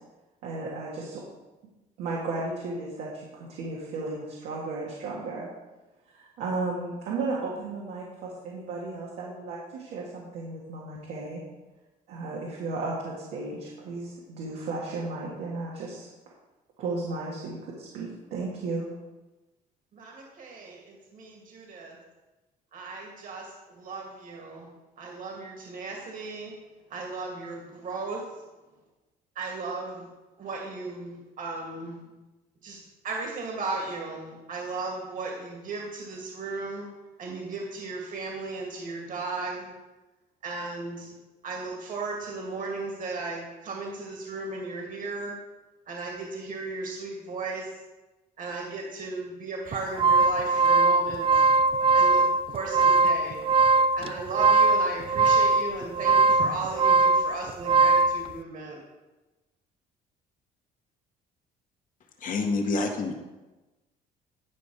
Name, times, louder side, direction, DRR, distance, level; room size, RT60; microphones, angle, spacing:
voice 1, 0.4-1.2 2.0-5.5 6.1-11.4 12.1-16.1 16.8-18.9, right 3 dB, 85° right, -5 dB, 2.0 m, -34 dB
voice 2, 19.9-22.0 22.7-24.7 25.0-26.5 26.9-28.2 29.4-30.1 30.4-32.1 32.6-32.8 33.0-36.9 37.2-39.7 40.4-41.1 41.4-45.4 45.9-47.8 48.4-51.4 51.9-53.4 53.9-58.8, right 3 dB, 50° right, -1 dB, 2.1 m, -36 dB
sound 1, 49.7-58.2, right 3 dB, 35° right, 0.3 m, -21 dB
voice 3, 62.2-63.1, left 3 dB, 50° left, 3 dB, 1.6 m, -27 dB
11.0 x 5.1 x 4.8 m, 1.1 s
cardioid pair, 110°, 17 cm